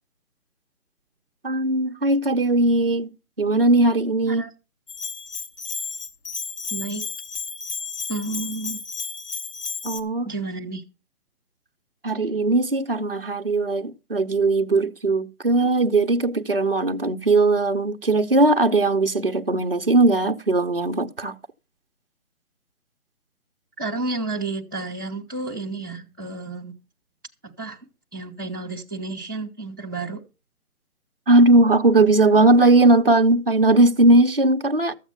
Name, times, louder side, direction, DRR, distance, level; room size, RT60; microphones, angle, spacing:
voice 1, 1.4-3.1 3.4-4.4 9.8-10.3 12.0-21.4 31.3-35.0, right 2 dB, 40° right, 0.8 m, -19 dB
Bell, 4.9-10.0, left 5 dB, 85° left, 2.7 m, -32 dB
voice 2, 6.7-7.0 8.1-8.8 10.2-10.8 23.8-26.7 27.4-27.8 28.1-30.2, right 3 dB, 15° right, 1.1 m, -31 dB
14.0 x 8.1 x 5.6 m
hypercardioid pair, 180°, 45 cm